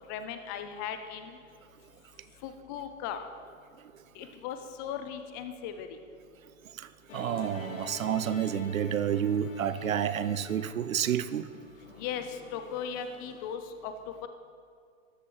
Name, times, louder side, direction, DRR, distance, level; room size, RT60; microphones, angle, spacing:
voice 1, 0.1-1.4 2.4-3.2 4.2-5.9 12.0-13.9 14.2-14.3, left 8 dB, 15° left, 8 dB, 0.4 m, -37 dB
voice 2, 6.7-11.5, right 9 dB, 75° right, 15 dB, 0.7 m, -30 dB
Musical instrument, 7.1-13.6, left 4 dB, 70° left, 1.7 m, -48 dB
13.5 x 10.5 x 4.6 m, 2.2 s
hypercardioid pair, 120°, 40 cm